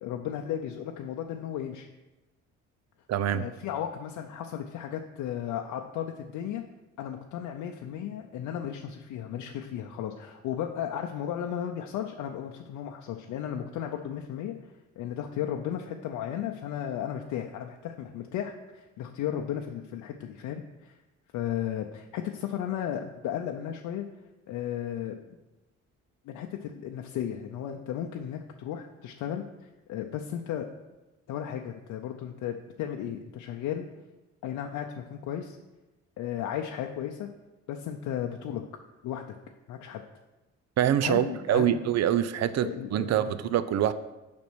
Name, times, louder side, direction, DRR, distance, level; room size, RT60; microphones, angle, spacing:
voice 1, 0.0-1.9 3.3-6.6 7.0-14.5 15.0-20.9 21.3-24.1 24.5-25.1 26.3-30.7 31.3-33.9 34.4-35.6 36.2-37.3 37.7-38.6 39.0-39.3 39.7-40.0 41.0-41.8 42.6-43.3, left 10 dB, 90° left, 3 dB, 0.6 m, -34 dB
voice 2, 3.1-3.4 40.8-43.9, right 11 dB, 60° right, 13 dB, 0.6 m, -25 dB
7.3 x 5.2 x 6.2 m, 1.1 s
cardioid pair, 90°, 30 cm